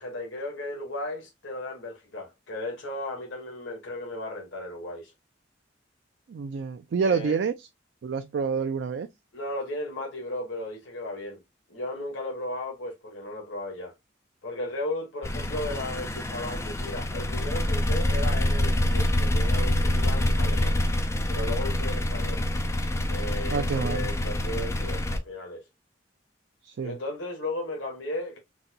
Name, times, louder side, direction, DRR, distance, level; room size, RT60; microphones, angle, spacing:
voice 1, 0.0-5.1 7.0-7.4 9.3-11.4 11.7-13.9 14.4-20.8 21.3-22.4 23.1-25.6 26.8-28.4, left 1 dB, 85° left, 1.1 m, -35 dB
voice 2, 6.3-7.7 8.0-9.1 23.5-24.1 26.6-27.0, right 5 dB, 65° right, 0.3 m, -28 dB
sound 1, 15.2-25.2, left 1 dB, 15° left, 0.3 m, -26 dB
4.0 x 2.2 x 2.7 m
head